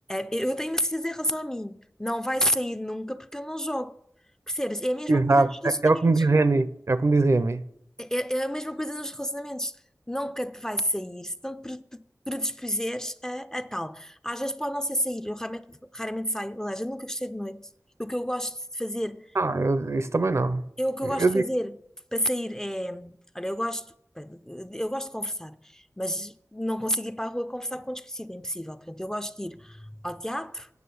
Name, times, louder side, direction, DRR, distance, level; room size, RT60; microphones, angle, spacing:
voice 1, 0.1-4.0 4.5-6.2 8.0-9.7 10.1-17.7 18.0-19.3 20.8-21.8 22.1-30.7, equal, 10° left, 0.4 m, -31 dB
voice 2, 5.1-7.6 19.4-20.6 21.0-21.4, right 3 dB, 55° right, 0.5 m, -22 dB
9.3 x 6.2 x 6.9 m
wide cardioid pair, 70°, 6 cm